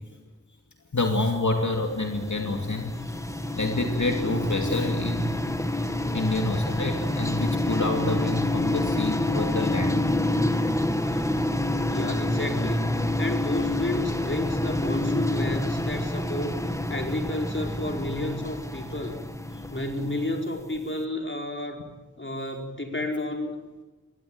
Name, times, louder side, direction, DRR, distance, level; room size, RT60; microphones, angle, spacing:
voice 1, 0.9-2.9 3.6-5.4 6.1-10.0 11.1-11.2, left 2 dB, 70° left, 3 dB, 2.7 m, -28 dB
sound 1, 1.7-20.7, left 1 dB, 10° left, 2.0 m, -28 dB
voice 2, 11.9-16.6 16.9-19.2 19.7-21.8 22.2-23.5, left 1 dB, 40° left, 3 dB, 4.8 m, -31 dB
22.5 x 19.5 x 9.2 m, 1.2 s
wide cardioid pair, 55°, 30 cm